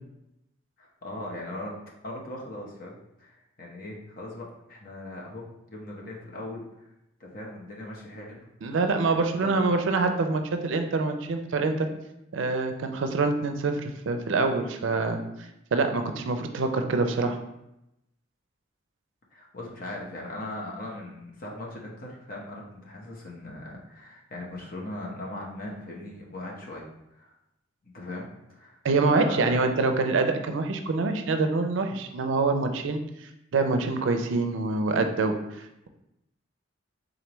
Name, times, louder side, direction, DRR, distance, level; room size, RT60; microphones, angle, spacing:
voice 1, 0.8-1.8 2.0-6.6 7.2-8.8 9.0-9.6 19.3-26.8 27.1-27.3 27.8-28.8 29.1-29.9, left 1 dB, 45° left, -2 dB, 0.8 m, -39 dB
voice 2, 8.6-11.9 12.3-17.4 28.8-35.9, right 3 dB, 75° right, 6 dB, 0.4 m, -26 dB
3.8 x 3.3 x 3.0 m, 0.87 s
head